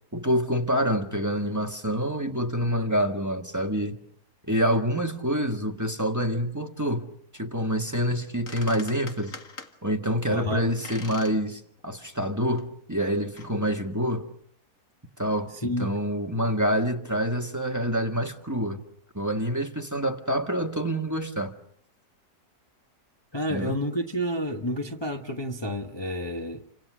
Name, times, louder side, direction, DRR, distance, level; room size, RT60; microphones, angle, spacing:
voice 1, 0.1-4.0 4.5-7.1 7.3-9.3 9.8-14.3 15.2-18.8 19.1-21.5 23.5-23.8, equal, 10° right, 1.7 m, -27 dB
sound 1, 8.1-8.2 8.5-9.7 10.8-11.4 11.8-11.9 12.5-12.6 13.4-13.5, left 4 dB, 55° left, 2.4 m, -42 dB
voice 2, 10.3-10.6 15.6-15.9 23.3-26.6, equal, 20° left, 1.3 m, -29 dB
29.5 x 26.0 x 6.2 m
omnidirectional pair, 1.6 m